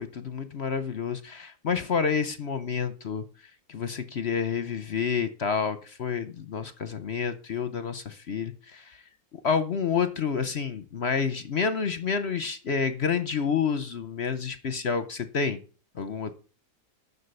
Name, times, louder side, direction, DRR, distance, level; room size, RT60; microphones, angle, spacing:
voice 1, 0.0-3.2 3.7-9.0 9.3-15.6 16.0-16.3, left 6 dB, 50° left, 12 dB, 0.8 m, -29 dB
11.0 x 6.8 x 6.7 m, 0.38 s
omnidirectional pair, 2.0 m